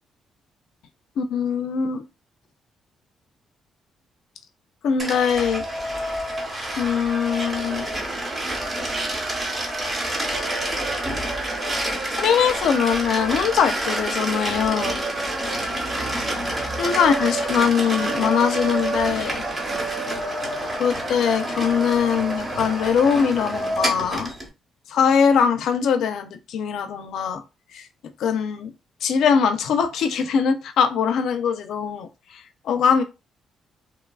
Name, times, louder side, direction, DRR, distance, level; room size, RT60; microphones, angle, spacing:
voice 1, 1.2-2.0 4.8-5.7 6.8-7.9 12.2-15.0 16.8-19.4 20.8-24.3 24.9-27.4 27.7-27.9 28.2-28.7 29.0-33.0, left 7 dB, 75° left, 0.4 m, -22 dB
sound 1, 5.0-24.5, right 1 dB, 30° right, 1.0 m, -27 dB
2.9 x 2.3 x 2.3 m
cardioid pair, 90°, 0 cm